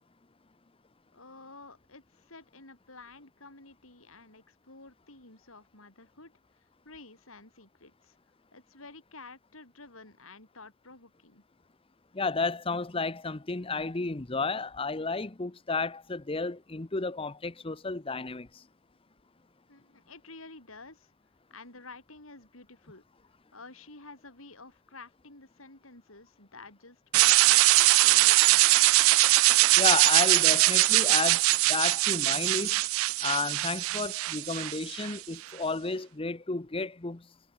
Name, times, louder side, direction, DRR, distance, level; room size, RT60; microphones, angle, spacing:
voice 1, 1.1-8.2 8.5-11.4 19.7-21.1 21.5-23.0 23.5-27.7 28.0-28.6, left 3 dB, 75° left, 6.6 m, -51 dB
voice 2, 12.1-18.6 29.8-32.8 33.2-37.2, left 3 dB, 25° left, 0.8 m, -32 dB
sound 1, 27.1-35.2, right 20 dB, 75° right, 0.3 m, -22 dB
head